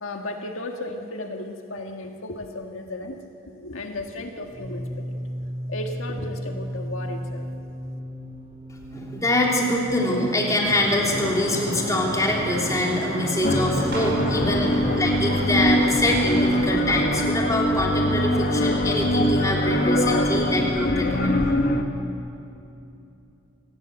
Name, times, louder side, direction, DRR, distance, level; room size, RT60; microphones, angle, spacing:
voice 1, 0.0-5.1 5.7-7.4, left 2 dB, 75° left, 3 dB, 1.7 m, -35 dB
sound 1, 3.8-16.7, equal, 30° right, 2.2 m, -36 dB
voice 2, 8.9-21.4, left 1 dB, 15° left, -2 dB, 3.5 m, -24 dB
sound 2, 10.6-16.8, right 1 dB, 55° right, 6.5 m, -33 dB
sound 3, 13.4-21.8, equal, 45° left, 1.5 m, -23 dB
28.0 x 18.5 x 8.1 m, 2.8 s
head